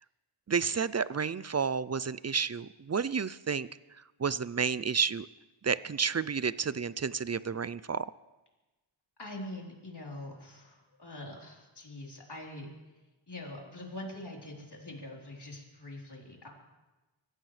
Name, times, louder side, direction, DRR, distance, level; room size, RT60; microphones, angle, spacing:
voice 1, 0.5-3.7 4.2-5.3 5.6-8.1, right 6 dB, 35° right, 17 dB, 0.4 m, -31 dB
voice 2, 9.2-12.7 13.3-16.5, left 1 dB, 55° left, -2 dB, 3.8 m, -44 dB
25.0 x 15.5 x 3.3 m, 1.1 s
wide cardioid pair, 50°, 49 cm